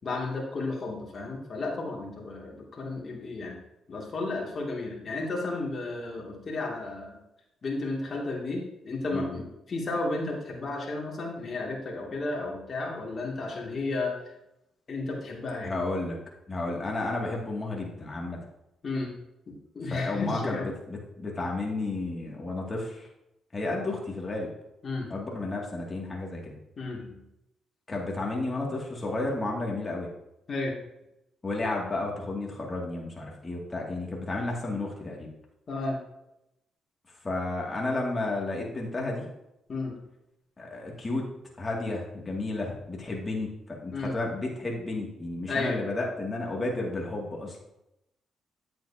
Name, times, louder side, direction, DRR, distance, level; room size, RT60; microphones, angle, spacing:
voice 1, 0.0-3.6 3.9-7.2 7.6-14.1 14.9-15.8 18.8-19.1 19.7-20.7 23.6-23.8 24.8-25.1 26.8-27.2 30.5-30.7 35.7-36.0 39.7-40.0 43.9-44.2 45.5-45.8, left 2 dB, 45° left, -2 dB, 2.6 m, -33 dB
voice 2, 15.6-16.2 16.5-18.4 19.9-20.6 20.9-23.1 23.5-24.5 25.1-26.5 27.9-30.1 31.4-35.3 37.2-39.3 40.6-41.3 41.6-47.6, left 2 dB, 25° left, -2 dB, 2.4 m, -32 dB
9.2 x 7.6 x 2.9 m, 0.87 s
cardioid pair, 75°, 0 cm